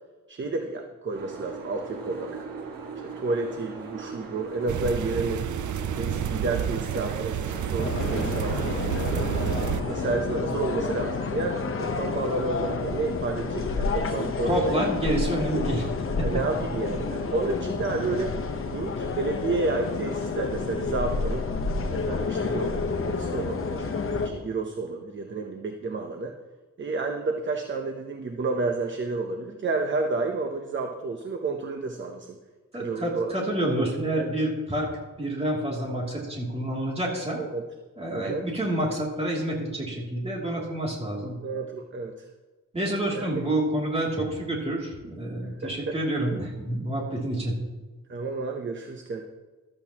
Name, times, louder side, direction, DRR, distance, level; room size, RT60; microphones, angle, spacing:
voice 1, 0.3-2.4 3.0-5.5 6.0-9.4 9.9-14.9 16.2-18.3 18.7-21.5 21.9-22.8 23.0-26.3 26.8-32.4 32.7-33.3 34.1-34.3 37.4-37.6 38.1-38.5 41.4-42.3 43.1-43.4 45.4-45.9 48.1-49.2, right 3 dB, 35° right, 4 dB, 0.8 m, -31 dB
Boat Water vehicle, 1.1-10.2, right 4 dB, 85° right, 2.0 m, -38 dB
sound 1, 4.7-9.8, right 9 dB, 65° right, 0.6 m, -30 dB
sound 2, 7.8-24.3, left 4 dB, 40° left, 0.9 m, -29 dB
voice 2, 14.5-15.9 16.2-16.4 32.7-34.9 35.2-37.4 38.0-41.4 42.7-47.6, right 1 dB, 20° right, -3 dB, 2.8 m, -28 dB
14.5 x 12.5 x 2.9 m, 1.3 s
wide cardioid pair, 175°, 33 cm